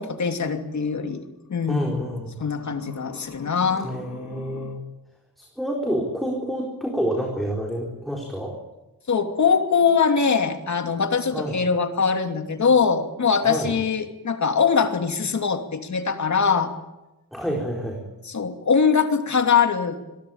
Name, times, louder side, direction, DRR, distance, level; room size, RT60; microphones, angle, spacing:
voice 1, 0.0-1.9 2.4-4.8 9.1-16.7 18.3-20.0, left 6 dB, 55° left, 6 dB, 2.8 m, -22 dB
voice 2, 1.7-2.4 3.8-4.8 5.4-8.6 11.3-11.5 13.4-13.7 17.3-18.0, equal, ahead, -1 dB, 4.4 m, -28 dB
28.0 x 22.0 x 8.8 m, 0.99 s
wide cardioid pair, 170°, 34 cm